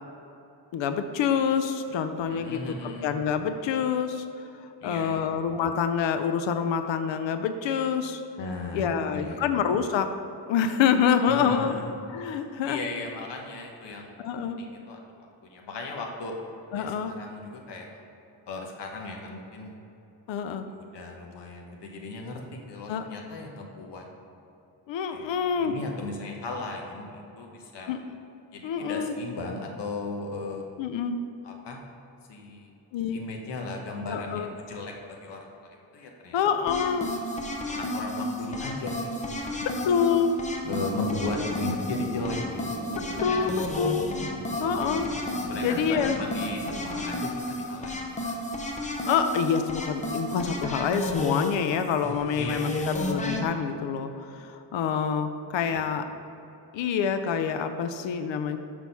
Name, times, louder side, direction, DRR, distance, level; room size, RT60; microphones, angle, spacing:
voice 1, 0.7-4.3 4.8-8.2 8.7-10.1 10.5-11.7 12.1-12.8 14.2-14.6 16.7-17.1 20.3-20.6 22.9-23.0 24.9-25.7 27.9-28.0 28.6-29.2 30.8-31.2 32.9-33.2 34.1-34.5 36.3-37.1 39.6-40.4 43.2-44.0 44.6-45.1 45.6-46.2 49.0-56.1 56.7-58.6, left 7 dB, 90° left, 9 dB, 0.6 m, -26 dB
voice 2, 2.3-3.1 4.8-5.3 8.4-9.5 11.3-11.8 12.3-14.1 14.4-15.0 15.4-16.4 16.7-18.0 18.5-19.7 20.7-24.0 25.1-27.9 28.5-30.6 31.4-31.8 32.3-32.7 33.1-35.5 35.9-36.4 36.8-36.9 37.7-40.0 40.7-42.4 45.5-48.3 52.4-52.9, left 3 dB, 70° left, 1 dB, 1.2 m, -36 dB
sound 1, 36.7-53.4, left 1 dB, 15° left, 0.7 m, -32 dB
sound 2, 40.6-47.0, right 1 dB, 50° right, 1.4 m, -39 dB
6.2 x 5.9 x 5.5 m, 2.9 s
wide cardioid pair, 150°, 44 cm